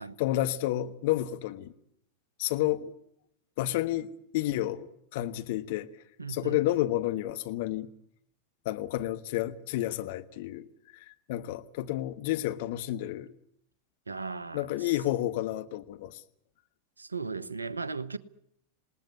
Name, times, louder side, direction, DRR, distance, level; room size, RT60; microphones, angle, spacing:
voice 1, 0.0-1.7 2.4-2.9 3.6-5.9 6.3-7.9 8.6-10.7 10.9-13.3 14.5-16.2, left 14 dB, 50° left, 1.4 m, -30 dB
voice 2, 6.2-6.6 14.1-14.9 17.0-18.2, right 4 dB, 80° right, 1.0 m, -37 dB
27.5 x 19.0 x 8.5 m
figure-of-eight pair, 90°, 0 cm